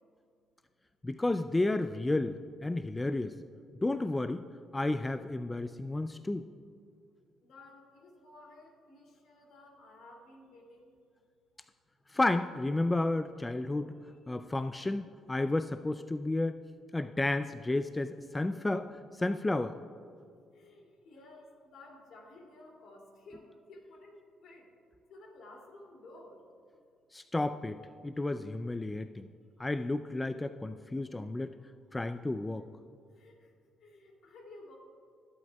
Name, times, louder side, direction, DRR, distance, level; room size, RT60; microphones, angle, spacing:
voice 1, 1.0-3.4 3.8-4.4 4.7-6.4 12.1-14.0 14.3-16.6 16.9-19.8 27.1-29.3 29.6-31.5 31.9-32.7, left 2 dB, 15° left, 10 dB, 0.3 m, -32 dB
voice 2, 7.4-10.9 20.5-24.6 25.1-26.4 33.2-33.5 33.8-34.8, left 2 dB, 70° left, 0 dB, 2.5 m, -54 dB
22.0 x 8.2 x 2.3 m, 2.2 s
cardioid pair, 95°, 0 cm